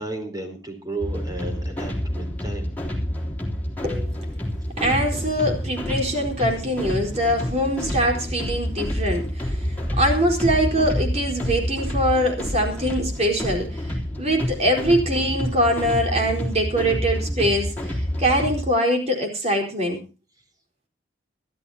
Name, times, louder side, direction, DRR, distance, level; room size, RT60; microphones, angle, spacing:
voice 1, 0.0-2.7, right 2 dB, 20° right, 5 dB, 4.2 m, -33 dB
sound 1, 1.0-18.6, equal, 10° left, 3.4 m, -28 dB
voice 2, 4.8-9.6 10.0-13.9 14.2-20.0, equal, 35° right, 2 dB, 4.5 m, -23 dB
24.5 x 13.5 x 2.9 m, 0.31 s
head